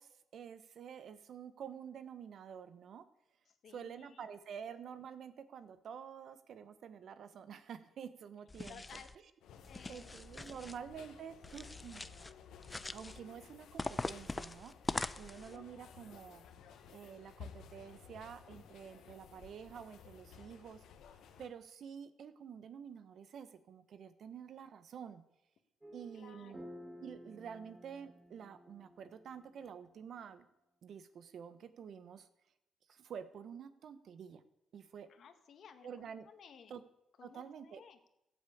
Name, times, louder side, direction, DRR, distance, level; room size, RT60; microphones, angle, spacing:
voice 1, 0.0-3.0 3.7-9.0 9.9-12.0 12.9-14.7 15.2-16.4 16.9-20.8 21.4-25.2 25.9-26.6 27.0-30.4 30.8-32.3 32.9-34.4 34.7-35.1 35.8-36.3 36.7-36.8 37.2-37.8, right 7 dB, 65° right, 12 dB, 1.2 m, -49 dB
voice 2, 3.6-4.3 8.7-9.1 9.7-10.1 10.4-10.6 15.5-15.6 26.1-26.7 35.1-36.7 37.2-38.0, left 7 dB, 60° left, 8 dB, 1.8 m, -57 dB
sound 1, 8.5-9.2 9.6-10.8 11.4-12.3 12.6-13.2 13.8-15.6, left 2 dB, 20° left, 0.6 m, -42 dB
sound 2, 9.4-21.5, left 7 dB, 80° left, 1.4 m, -56 dB
sound 3, 25.8-30.3, equal, 15° right, 1.5 m, -54 dB
15.0 x 8.4 x 8.6 m, 0.85 s
cardioid pair, 90°, 0 cm